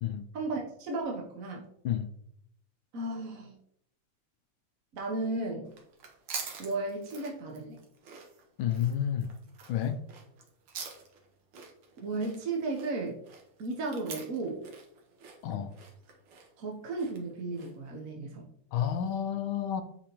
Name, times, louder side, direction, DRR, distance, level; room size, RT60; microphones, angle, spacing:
voice 1, 0.3-1.6 2.9-3.5 4.9-5.7 6.6-7.8 12.0-13.2 13.6-14.6 16.6-18.5, right 3 dB, 50° right, 1 dB, 1.0 m, -34 dB
sound 1, 5.6-17.9, right 5 dB, 75° right, 2.0 m, -46 dB
voice 2, 8.6-9.3 9.7-10.0 15.4-15.7 18.7-19.8, left 9 dB, 75° left, 8 dB, 1.4 m, -30 dB
8.8 x 5.1 x 3.0 m, 0.71 s
omnidirectional pair, 2.4 m